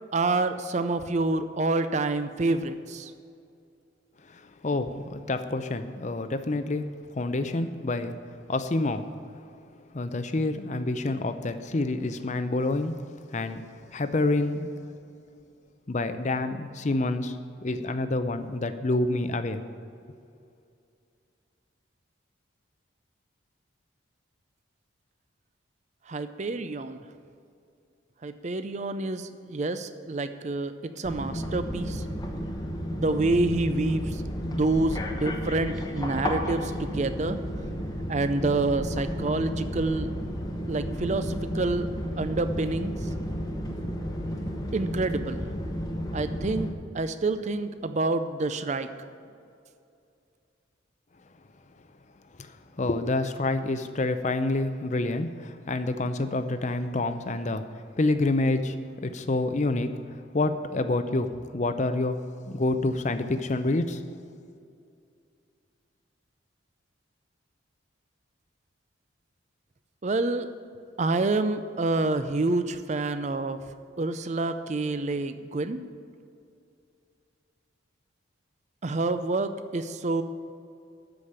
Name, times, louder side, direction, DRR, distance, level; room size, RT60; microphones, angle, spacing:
voice 1, 0.1-3.1 26.1-27.0 28.2-32.1 32.9-37.4 38.1-40.1 40.7-41.9 42.2-43.1 44.7-45.4 46.1-48.9 70.0-70.5 71.0-73.6 74.0-75.8 78.8-80.2, right 2 dB, 35° right, 10 dB, 0.5 m, -28 dB
voice 2, 4.3-9.1 9.3-9.4 9.9-12.9 13.3-14.8 15.9-19.6 52.4-58.8 59.0-64.0, left 2 dB, 35° left, 9 dB, 0.5 m, -28 dB
sound 1, 31.0-46.7, equal, 20° left, 0.9 m, -32 dB
13.0 x 5.1 x 8.0 m, 2.5 s
head